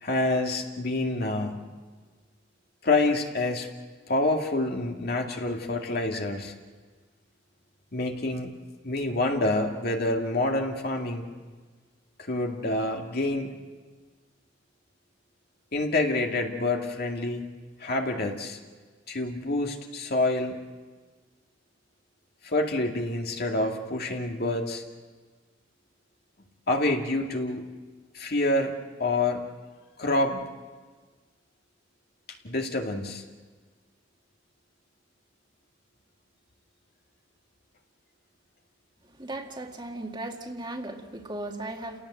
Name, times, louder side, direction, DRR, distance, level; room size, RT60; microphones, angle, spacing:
voice 1, 0.0-1.6 2.8-3.7 4.1-6.5 7.9-8.5 8.8-11.3 12.2-13.5 15.7-17.5 17.8-18.6 19.1-20.6 22.4-24.8 26.7-27.6 28.1-28.7 29.0-29.4 30.0-30.4 32.3-33.2, left 2 dB, 55° left, 2 dB, 2.3 m, -27 dB
voice 2, 39.2-42.0, right 1 dB, 25° right, 3 dB, 1.9 m, -36 dB
30.0 x 18.0 x 7.9 m, 1.4 s
head